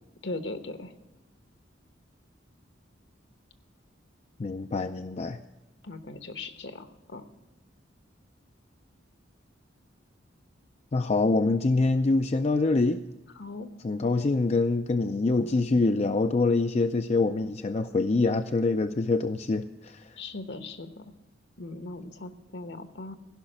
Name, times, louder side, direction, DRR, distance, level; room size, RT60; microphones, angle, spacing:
voice 1, 0.2-0.9 5.8-7.2 13.4-13.7 20.2-21.0 21.6-23.2, left 2 dB, 65° left, 10 dB, 1.1 m, -39 dB
voice 2, 4.4-5.4 10.9-13.1 13.8-20.2, left 3 dB, 35° left, 8 dB, 0.4 m, -25 dB
16.0 x 5.9 x 9.0 m, 1.0 s
head